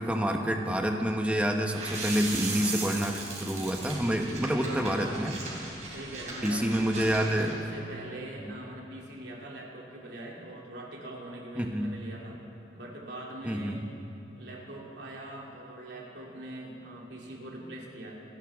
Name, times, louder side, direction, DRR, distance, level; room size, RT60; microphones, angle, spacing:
voice 1, 0.0-5.3 6.4-7.5 8.4-8.5 11.6-11.9 13.4-13.8, equal, 5° right, 2 dB, 1.0 m, -28 dB
sound 1, 1.7-7.5, right 3 dB, 40° right, 3.5 m, -38 dB
voice 2, 4.0-5.3 5.9-12.4 12.7-13.9 14.4-18.2, right 1 dB, 85° right, -2 dB, 2.8 m, -42 dB
28.0 x 11.0 x 3.6 m, 2.7 s
head